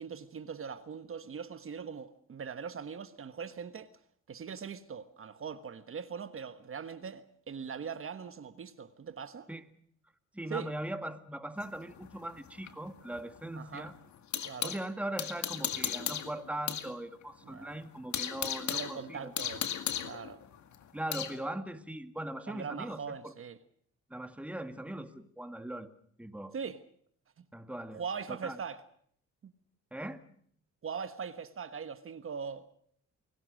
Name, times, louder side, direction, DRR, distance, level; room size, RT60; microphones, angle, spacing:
voice 1, 0.0-3.9 4.3-9.5 10.5-10.7 13.5-13.9 14.4-14.7 17.4-17.8 18.7-19.7 20.0-20.4 22.5-23.6 26.5-26.8 27.9-28.8 29.4-29.5 30.8-32.6, right 6 dB, 45° right, 1.4 m, -41 dB
voice 2, 10.3-13.9 14.6-19.3 20.9-23.3 24.1-25.9 26.2-26.5 27.5-28.0 28.3-28.6 29.9-30.2, right 1 dB, 5° right, 2.0 m, -40 dB
sound 1, 11.6-14.8 15.2-16.9 17.2-17.3 17.7-21.4, left 9 dB, 70° left, 2.0 m, -36 dB
29.0 x 18.5 x 6.5 m
cardioid pair, 90°, 30 cm